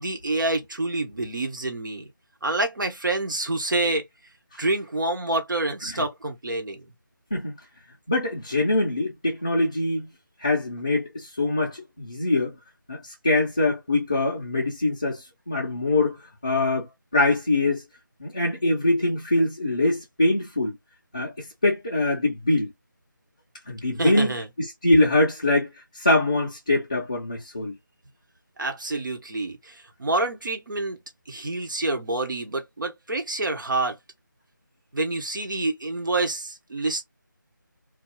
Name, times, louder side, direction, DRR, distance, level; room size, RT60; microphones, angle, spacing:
voice 1, 0.0-2.1 2.4-4.1 4.6-6.8 24.0-24.5 28.6-31.0 31.3-34.0 34.9-37.0, right 2 dB, 70° right, 1.0 m, -27 dB
voice 2, 8.1-10.1 10.4-12.5 12.9-17.8 18.2-20.8 21.1-22.7 23.7-27.8, left 2 dB, 20° left, 0.4 m, -24 dB
2.3 x 2.2 x 3.0 m
figure-of-eight pair, 170°, 11 cm